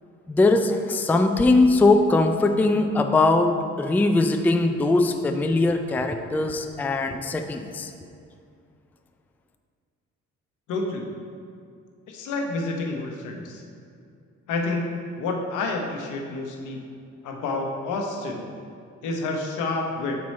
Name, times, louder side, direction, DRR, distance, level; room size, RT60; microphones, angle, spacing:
voice 1, 0.3-3.5 3.8-7.9, left 2 dB, 5° left, 6 dB, 0.3 m, -21 dB
voice 2, 10.7-11.1 12.1-13.6 14.5-16.8 17.2-18.5 19.0-20.2, left 3 dB, 85° left, 2 dB, 0.9 m, -29 dB
6.0 x 4.6 x 4.2 m, 2.4 s
cardioid pair, 90°, 30 cm